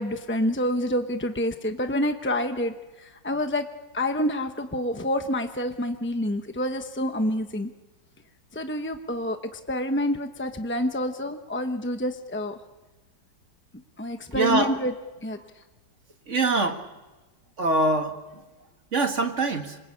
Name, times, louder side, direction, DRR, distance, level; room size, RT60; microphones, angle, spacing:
voice 1, 0.0-3.7 3.9-7.7 8.5-12.6 14.0-14.9 15.2-15.4, left 1 dB, 10° left, 6 dB, 0.5 m, -28 dB
voice 2, 14.3-14.7 16.3-16.8 17.6-18.2 18.9-19.8, right 2 dB, 40° right, 5 dB, 2.1 m, -23 dB
27.0 x 23.5 x 8.6 m, 1.1 s
omnidirectional pair, 2.1 m